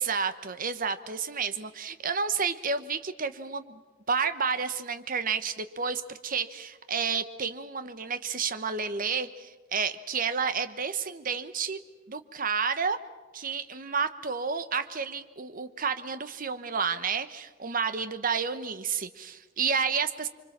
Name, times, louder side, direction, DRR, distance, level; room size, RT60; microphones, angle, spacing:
voice 1, 0.0-3.8 4.1-11.8 12.1-13.0 13.3-20.3, right 5 dB, 45° right, 11 dB, 1.1 m, -30 dB
25.5 x 24.5 x 7.4 m, 1.3 s
head